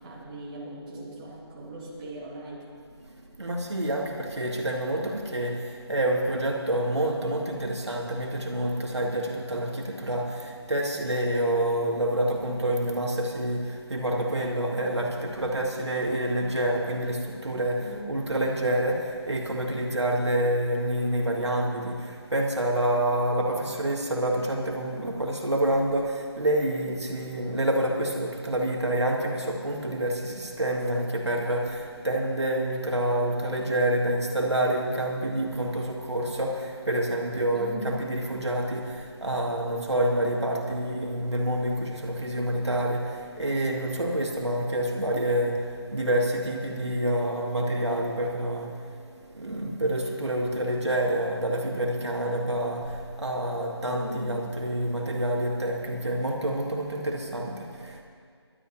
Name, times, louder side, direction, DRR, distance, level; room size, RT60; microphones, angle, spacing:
voice 1, 0.0-2.6 17.8-18.1 37.5-37.9 53.9-54.3, right 1 dB, 15° right, -7 dB, 2.5 m, -39 dB
voice 2, 3.1-58.0, right 1 dB, 75° right, -1 dB, 2.3 m, -28 dB
25.0 x 12.5 x 2.9 m, 2.1 s
figure-of-eight pair, 160°, 14 cm